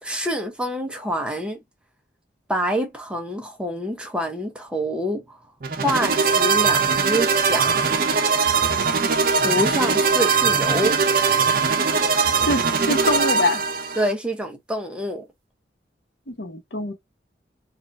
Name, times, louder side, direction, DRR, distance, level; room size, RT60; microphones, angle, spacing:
voice 1, 0.0-1.6 2.5-5.4 5.8-8.1 9.4-11.0 11.3-11.5 14.0-15.3, equal, 5° right, 0.7 m, -26 dB
sound 1, 5.6-14.1, right 5 dB, 55° right, 0.6 m, -20 dB
voice 2, 12.5-13.6 16.3-16.9, left 1 dB, 80° left, 1.0 m, -24 dB
4.2 x 2.4 x 2.2 m
head